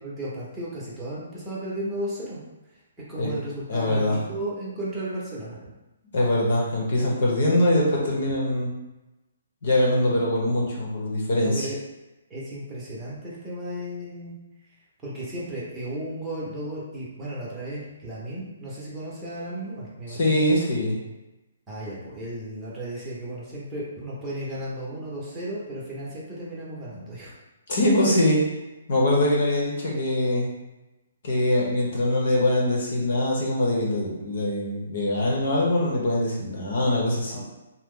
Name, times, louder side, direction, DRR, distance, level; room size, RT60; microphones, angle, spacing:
voice 1, 0.0-2.4 3.1-5.6 9.9-10.1 11.4-11.8 12.3-14.4 15.0-20.4 21.7-27.3 37.3-37.4, right 1 dB, 15° right, -8 dB, 0.9 m, -34 dB
voice 2, 3.7-4.2 6.1-8.7 9.6-11.7 20.1-21.0 27.7-28.4 28.9-30.5 31.2-37.4, left 1 dB, 60° left, -3 dB, 0.9 m, -23 dB
2.9 x 2.1 x 3.7 m, 1.0 s
hypercardioid pair, 145°, 0 cm